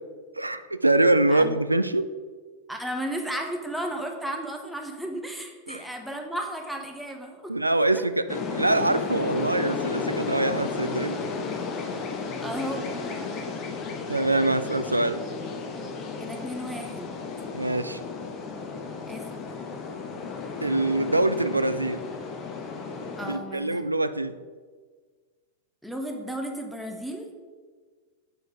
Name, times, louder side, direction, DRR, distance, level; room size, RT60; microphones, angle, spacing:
voice 1, 0.4-2.1 5.7-5.9 7.5-11.2 14.1-15.2 17.5-18.0 20.6-22.0 23.2-24.4, right 2 dB, 85° right, 12 dB, 0.3 m, -24 dB
voice 2, 2.7-7.4 8.0-8.1 12.4-13.5 16.2-17.2 19.1-19.3 23.2-23.8 25.8-27.3, right 1 dB, ahead, 2 dB, 1.0 m, -34 dB
sound 1, 8.3-23.4, left 4 dB, 35° left, 0.8 m, -33 dB
7.9 x 4.5 x 4.5 m, 1.5 s
figure-of-eight pair, 90°, 0 cm